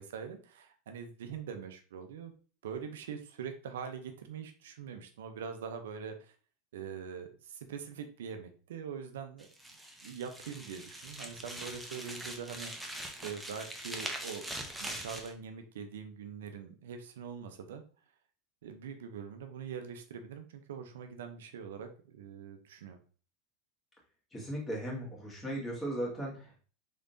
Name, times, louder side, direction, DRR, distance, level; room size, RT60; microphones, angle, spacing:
voice 1, 0.0-2.3 2.6-6.3 6.7-9.5 10.0-12.7 13.2-14.5 14.8-17.8 18.6-23.0, right 6 dB, 85° right, 6 dB, 0.6 m, -43 dB
sound 1, 9.4-15.3, right 1 dB, 5° right, 0.7 m, -42 dB
voice 2, 24.3-26.6, right 1 dB, 15° left, -3 dB, 2.0 m, -37 dB
3.8 x 3.4 x 2.6 m, 0.39 s
supercardioid pair, 110°, 0 cm